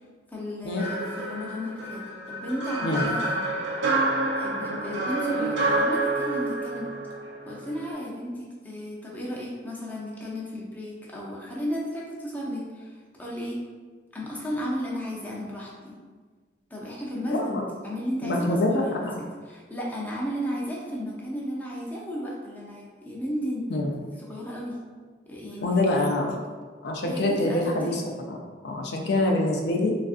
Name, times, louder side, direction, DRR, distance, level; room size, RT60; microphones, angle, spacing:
voice 1, 0.3-2.0 2.3-3.5 4.4-6.9 7.5-12.9 13.2-13.6 14.1-15.9 16.7-17.6 17.8-23.7 24.2-24.8 25.3-25.9 27.0-27.9, equal, 10° left, -5 dB, 0.5 m, -34 dB
sound 1, 0.8-7.9, right 2 dB, 85° right, 0.6 m, -28 dB
voice 2, 17.3-17.6 18.2-19.2 23.7-23.9 25.6-26.4 26.8-28.0 28.3-28.4 28.6-29.9, left 2 dB, 65° left, 0 dB, 0.4 m, -25 dB
3.4 x 2.5 x 2.4 m, 1.5 s
head